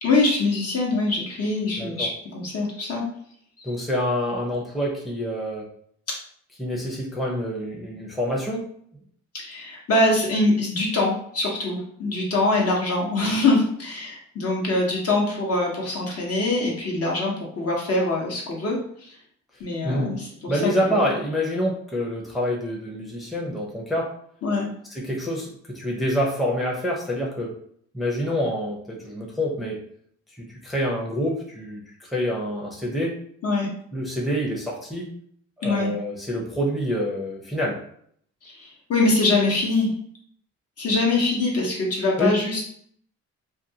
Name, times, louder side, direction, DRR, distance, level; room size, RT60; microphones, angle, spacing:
voice 1, 0.0-3.0 9.3-19.2 19.6-20.7 24.4-24.7 33.4-33.7 35.6-35.9 38.4-39.9 40.8-42.6, left 2 dB, 55° left, -2 dB, 1.0 m, -23 dB
voice 2, 1.8-2.1 3.6-5.6 6.6-8.7 19.8-20.2 20.5-24.1 24.9-27.6 27.9-29.8 30.4-33.2 33.9-35.1 35.6-37.8 42.2-42.4, equal, ahead, -3 dB, 0.6 m, -27 dB
2.4 x 2.3 x 2.7 m, 0.64 s
cardioid pair, 90°, 30 cm